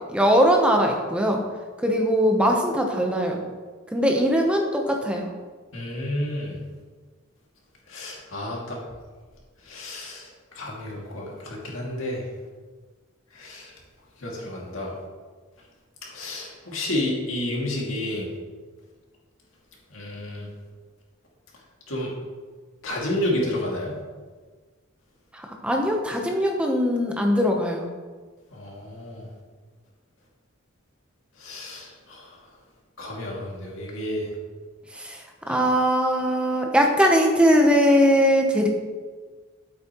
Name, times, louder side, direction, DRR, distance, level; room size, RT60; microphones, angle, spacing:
voice 1, 0.1-1.4 1.8-3.4 3.9-5.3 25.3-27.8 34.9-35.2 35.5-38.7, equal, 5° right, 1 dB, 0.8 m, -20 dB
voice 2, 5.7-6.6 7.9-8.8 9.7-10.3 10.6-12.2 13.4-13.7 14.2-14.9 16.1-18.3 19.9-20.5 21.9-22.1 22.8-23.9 28.5-29.2 31.4-32.2 33.0-34.3, left 1 dB, 75° left, -3 dB, 2.3 m, -30 dB
9.1 x 8.2 x 3.0 m, 1.4 s
head